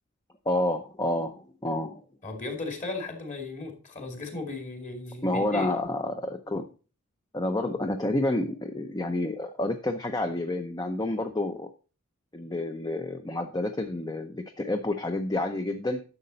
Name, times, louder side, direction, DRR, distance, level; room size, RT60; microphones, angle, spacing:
voice 1, 0.5-2.0 5.2-6.7 7.3-11.7 12.3-16.0, left 1 dB, 20° left, 0.6 m, -29 dB
voice 2, 2.2-5.7, left 3 dB, 35° left, 2.4 m, -36 dB
11.0 x 6.6 x 4.0 m
head